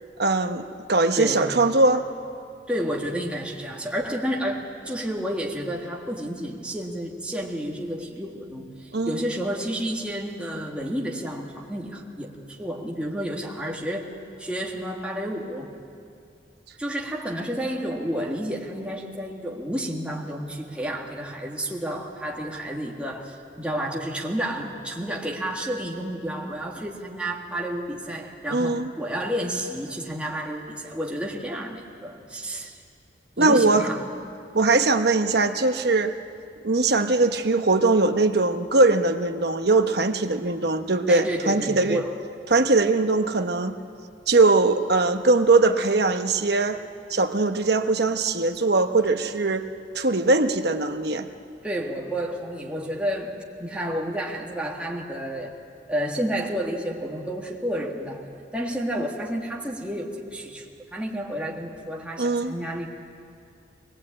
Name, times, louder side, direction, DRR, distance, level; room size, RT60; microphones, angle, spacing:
voice 1, 0.2-2.0 8.9-9.2 28.5-28.9 33.4-33.9 34.5-36.1 36.6-42.0 42.5-43.7 44.3-46.8 47.1-49.6 49.9-51.3 62.2-62.5, right 3 dB, 65° right, 7 dB, 1.1 m, -21 dB
voice 2, 1.2-1.5 2.7-14.1 14.4-15.8 16.8-32.8 33.4-34.0 41.1-42.2 51.6-55.5 55.9-58.2 58.5-62.9, equal, 5° right, -2 dB, 1.8 m, -30 dB
22.5 x 19.5 x 8.6 m, 2.4 s
head